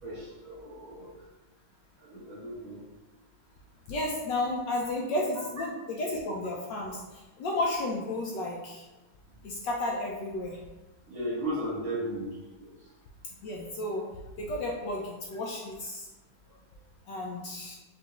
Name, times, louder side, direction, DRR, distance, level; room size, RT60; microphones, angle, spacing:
voice 1, 0.0-1.1 2.0-2.8 11.1-12.3 12.6-12.7, equal, 45° right, -8 dB, 1.6 m, -35 dB
voice 2, 3.9-8.8 9.4-10.6 13.3-14.1 14.4-16.1 17.1-17.8, left 1 dB, 70° left, -2 dB, 1.2 m, -32 dB
5.8 x 2.6 x 3.0 m, 1.1 s
omnidirectional pair, 2.3 m